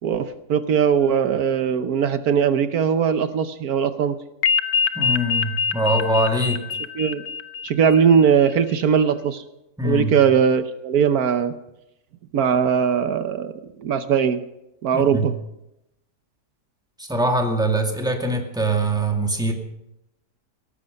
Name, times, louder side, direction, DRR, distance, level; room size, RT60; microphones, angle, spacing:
voice 1, 0.0-4.2 7.0-7.2 7.6-9.4 9.8-11.5 12.3-13.5 13.8-14.4 14.8-15.3, right 7 dB, 75° right, 11 dB, 1.3 m, -20 dB
sound 1, 4.4-8.5, left 6 dB, 75° left, 1.3 m, -24 dB
voice 2, 5.0-6.6 9.8-10.2 14.9-15.3 17.0-19.5, right 1 dB, 5° right, 2 dB, 2.1 m, -23 dB
17.5 x 14.0 x 5.3 m, 0.87 s
omnidirectional pair, 1.6 m